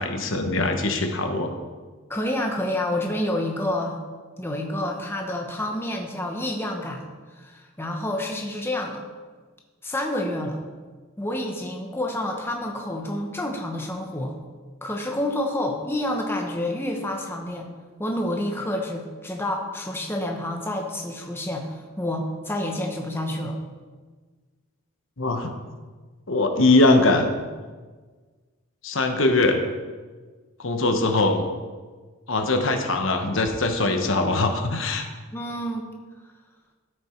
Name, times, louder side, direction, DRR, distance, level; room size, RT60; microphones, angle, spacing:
voice 1, 0.0-1.6 25.2-25.5 26.3-27.3 28.8-29.6 30.6-31.4 32.3-35.1, left 2 dB, 60° left, 5 dB, 1.0 m, -21 dB
voice 2, 2.1-4.0 4.4-7.0 7.4-9.0 9.8-10.6 11.2-14.4 14.8-17.7 18.0-23.6 35.3-35.9, left 1 dB, 10° left, 2 dB, 0.9 m, -28 dB
12.5 x 6.8 x 4.5 m, 1.4 s
head